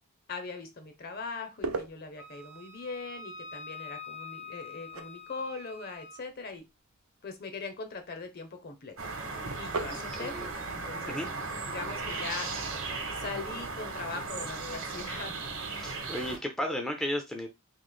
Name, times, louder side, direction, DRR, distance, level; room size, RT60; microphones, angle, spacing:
voice 1, 0.3-6.6 7.2-9.1 9.6-10.4 10.7-11.2 11.7-12.5 13.1-15.3, left 4 dB, 45° left, 7 dB, 0.7 m, -40 dB
sound 1, 0.7-15.9, right 4 dB, 80° right, 0.5 m, -46 dB
Wind instrument woodwind instrument, 2.2-6.2, left 4 dB, 70° left, 1.4 m, -45 dB
sound 2, 9.0-16.4, right 4 dB, 60° right, 1.0 m, -36 dB
voice 2, 9.9-10.5 11.1-11.3 15.8-17.5, equal, 5° left, 3 dB, 0.4 m, -34 dB
3.1 x 2.5 x 3.8 m, 0.22 s
head